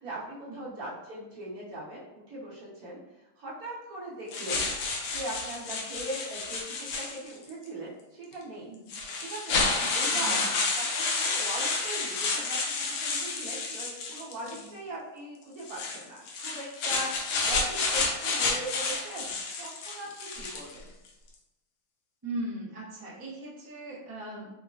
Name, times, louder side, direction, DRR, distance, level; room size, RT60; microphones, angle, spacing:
voice 1, 0.0-3.0 3.4-4.7 5.0-8.7 9.2-10.4 10.8-20.9, right 1 dB, 50° right, -6 dB, 1.2 m, -40 dB
sound 1, 4.3-7.5 8.3-8.4 8.9-14.7 15.6-20.8, left 3 dB, 75° left, 1.4 m, -30 dB
voice 2, 9.8-10.4 14.4-14.7 22.2-24.5, right 1 dB, 20° right, -9 dB, 0.6 m, -39 dB
3.8 x 2.8 x 2.5 m, 0.95 s
omnidirectional pair, 2.3 m